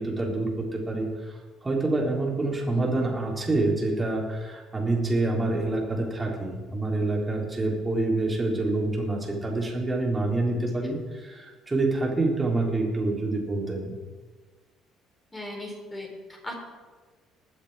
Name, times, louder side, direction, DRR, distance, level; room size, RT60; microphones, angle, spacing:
voice 1, 0.0-1.4 1.6-14.0, right 2 dB, 20° right, -1 dB, 3.8 m, -27 dB
voice 2, 15.3-16.5, left 1 dB, 20° left, 0 dB, 4.4 m, -38 dB
21.0 x 7.2 x 5.0 m, 1.4 s
figure-of-eight pair, 55°, 0 cm